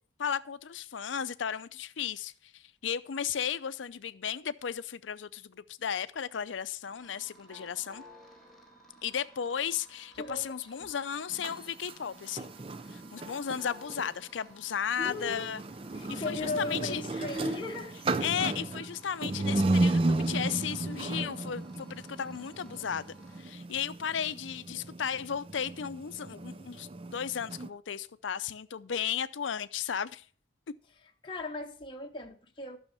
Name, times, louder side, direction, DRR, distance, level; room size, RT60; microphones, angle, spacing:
voice 1, 0.2-8.0 9.0-12.5 12.9-15.6 16.1-17.0 18.2-30.2, left 8 dB, 85° left, 0.5 m, -35 dB
sound 1, 6.8-23.4, right 1 dB, ahead, 1.9 m, -56 dB
voice 2, 10.2-10.9 15.0-15.5 15.9-17.9 31.2-32.8, left 2 dB, 25° left, 0.9 m, -37 dB
sound 2, 11.3-14.1 15.0-27.7, right 2 dB, 30° right, 0.4 m, -34 dB
11.5 x 6.4 x 5.5 m
head